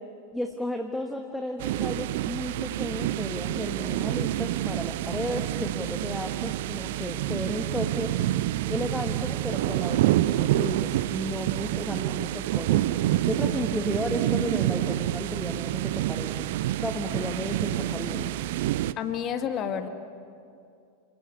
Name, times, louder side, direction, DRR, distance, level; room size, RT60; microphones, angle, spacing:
voice 1, 0.3-8.2 8.7-12.8 13.2-16.5 16.8-18.3, left 1 dB, 5° left, 3 dB, 1.6 m, -33 dB
sound 1, 1.6-18.9, right 14 dB, 50° right, 0.6 m, -28 dB
voice 2, 19.0-19.9, left 8 dB, 30° left, 8 dB, 1.8 m, -29 dB
29.0 x 19.0 x 8.4 m, 2.5 s
figure-of-eight pair, 90°, 0 cm